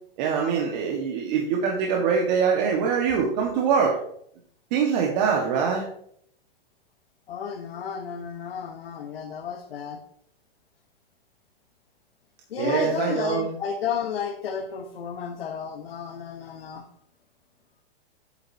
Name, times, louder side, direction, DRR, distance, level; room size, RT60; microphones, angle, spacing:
voice 1, 0.2-4.0 4.7-5.8 12.6-13.5, right 6 dB, 50° right, 0 dB, 1.7 m, -23 dB
voice 2, 7.3-10.0 12.5-16.8, left 7 dB, 85° left, 3 dB, 1.2 m, -32 dB
9.0 x 7.9 x 2.8 m, 0.68 s
hypercardioid pair, 135°, 29 cm